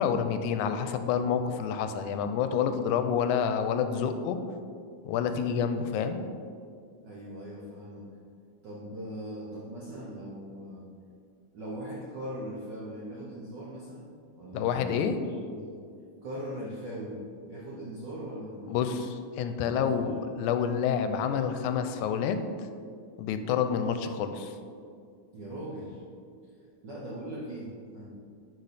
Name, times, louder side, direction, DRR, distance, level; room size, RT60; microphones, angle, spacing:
voice 1, 0.0-4.4 5.1-6.2 14.5-15.2 18.7-19.1 19.4-22.4 23.2-24.6, left 7 dB, 90° left, 8 dB, 2.0 m, -28 dB
voice 2, 7.0-8.1 8.6-10.9 11.5-15.1 15.5-15.8 16.2-19.0 19.6-20.1 25.3-26.0 26.8-28.1, equal, 85° right, -5 dB, 0.9 m, -40 dB
10.5 x 5.1 x 4.1 m, 2.3 s
omnidirectional pair, 3.4 m